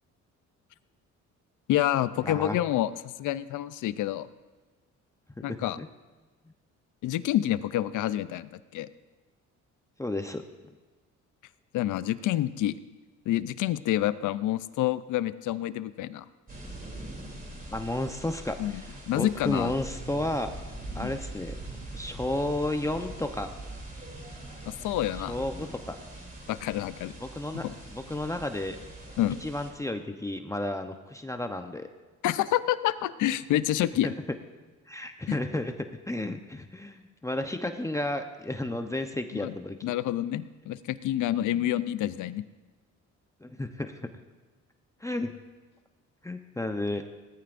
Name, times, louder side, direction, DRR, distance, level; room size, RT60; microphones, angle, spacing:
voice 1, 1.7-4.3 5.4-5.8 7.0-8.9 11.7-12.8 13.3-16.3 18.6-19.8 21.0-21.1 24.7-25.3 26.5-27.1 27.5-27.7 29.2-29.4 32.2-34.1 35.3-35.4 39.4-39.5 39.8-42.4, left 13 dB, 80° left, 15 dB, 0.6 m, -28 dB
voice 2, 2.2-2.6 5.4-5.9 10.0-10.4 17.7-20.5 20.9-21.6 21.9-23.5 25.3-26.0 27.2-28.8 29.4-31.9 34.0-34.1 34.9-39.8 41.5-41.7 43.4-44.1 45.0-45.3 46.2-47.0, left 1 dB, 10° left, 6 dB, 0.8 m, -32 dB
sound 1, 16.5-29.7, right 2 dB, 30° right, 3.1 m, -42 dB
18.5 x 14.0 x 2.6 m, 1.3 s
cardioid pair, 90°, 30 cm